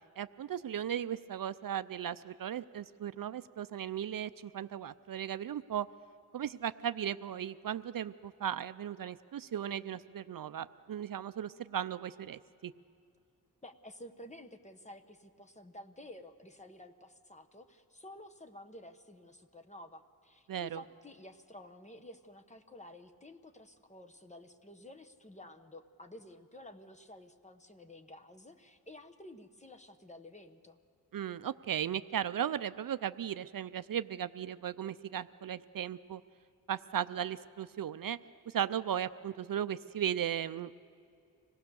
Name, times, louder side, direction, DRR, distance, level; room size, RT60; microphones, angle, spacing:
voice 1, 0.2-5.9 6.3-12.7 20.5-20.8 31.1-36.2 36.7-38.2 38.5-40.8, right 9 dB, 60° right, 13 dB, 0.5 m, -36 dB
voice 2, 13.6-30.8, left 1 dB, 20° left, 7 dB, 1.0 m, -52 dB
25.5 x 18.5 x 6.9 m, 2.6 s
wide cardioid pair, 145°, 39 cm